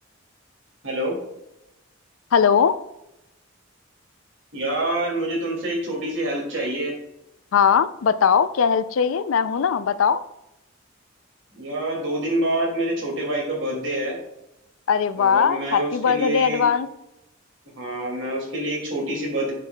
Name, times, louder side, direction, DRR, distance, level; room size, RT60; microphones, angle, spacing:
voice 1, 0.8-1.2 4.5-6.9 11.5-14.2 15.1-16.6 17.8-19.5, right 1 dB, 65° right, 2.4 m, -26 dB
voice 2, 2.3-2.8 7.5-10.2 14.9-16.9, left 7 dB, 80° left, 0.4 m, -20 dB
8.0 x 6.1 x 2.3 m
head